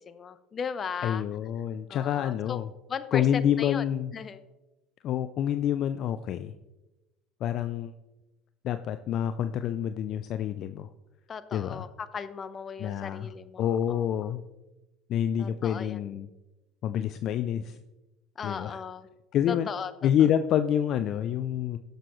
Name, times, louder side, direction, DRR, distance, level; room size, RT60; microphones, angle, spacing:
voice 1, 0.0-1.2 1.9-2.6 2.9-3.8 4.1-4.4 11.3-14.3 15.4-16.0 18.4-19.1 19.5-19.9, left 6 dB, 35° left, 12 dB, 0.9 m, -37 dB
voice 2, 1.0-2.7 3.1-4.1 5.0-6.5 7.4-7.9 8.6-10.9 11.5-11.9 12.8-13.3 13.6-14.4 15.1-16.3 16.8-17.8 18.4-18.8 19.3-19.7 20.0-21.8, left 10 dB, 55° left, 10 dB, 0.4 m, -27 dB
16.5 x 6.7 x 3.1 m, 1.0 s
hypercardioid pair, 80°, 0 cm